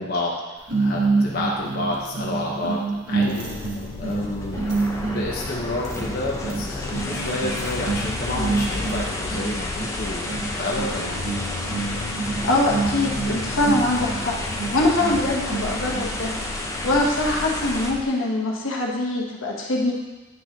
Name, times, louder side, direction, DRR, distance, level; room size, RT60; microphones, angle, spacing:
voice 1, 0.0-3.5 4.0-10.3 10.6-11.2, left 2 dB, 50° left, -4 dB, 1.1 m, -30 dB
sound 1, 0.7-16.1, right 3 dB, 60° right, 1.1 m, -28 dB
sound 2, 3.4-18.0, left 3 dB, 30° left, 0.3 m, -35 dB
sound 3, 4.0-17.9, left 1 dB, 15° left, 0.7 m, -32 dB
voice 2, 12.4-14.4 14.7-16.3 16.8-19.9, left 2 dB, 75° left, -2 dB, 1.2 m, -23 dB
9.3 x 5.9 x 2.9 m, 1.1 s
head